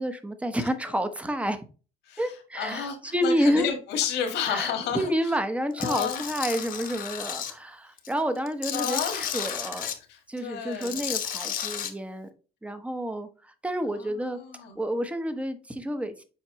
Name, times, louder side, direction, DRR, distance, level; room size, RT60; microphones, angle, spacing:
voice 1, 0.0-1.6 2.2-2.9 3.1-3.7 4.5-9.9 10.3-12.3 12.6-14.4 14.8-16.2, equal, 5° right, 0.8 m, -29 dB
voice 2, 2.0-5.3 5.8-6.2 8.7-9.6 10.1-11.0 13.9-14.7, left 8 dB, 85° left, 1.7 m, -32 dB
Tools, 5.8-7.5 8.0-10.0 10.7-11.9, left 9 dB, 55° left, 1.1 m, -33 dB
7.1 x 4.6 x 3.0 m
cardioid pair, 110°, 17 cm